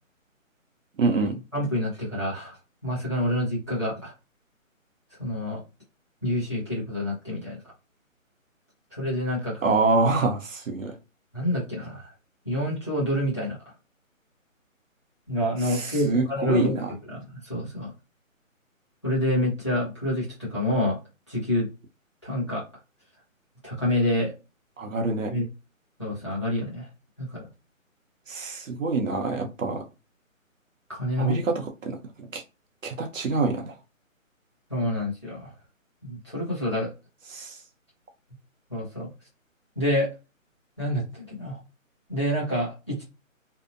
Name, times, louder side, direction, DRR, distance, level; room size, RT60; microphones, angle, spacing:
voice 1, 1.0-1.4 9.6-11.0 15.6-16.9 24.8-25.3 28.3-29.9 31.2-32.4 32.8-33.7 37.3-37.6, right 3 dB, 70° right, 4 dB, 0.7 m, -26 dB
voice 2, 1.5-2.6 2.8-4.1 5.2-5.6 6.2-7.6 8.9-9.6 11.3-12.1 12.4-13.6 15.3-16.8 17.1-17.9 19.0-21.0 21.3-21.7 22.2-22.6 23.6-24.3 25.3-25.4 26.0-26.9 27.2-27.5 30.9-31.4 34.7-35.5 36.0-36.9 38.7-39.1 39.8-40.1 40.8-41.6 42.1-43.0, left 1 dB, 20° left, -8 dB, 0.7 m, -27 dB
2.7 x 2.0 x 2.5 m, 0.29 s
hypercardioid pair, 180°, 41 cm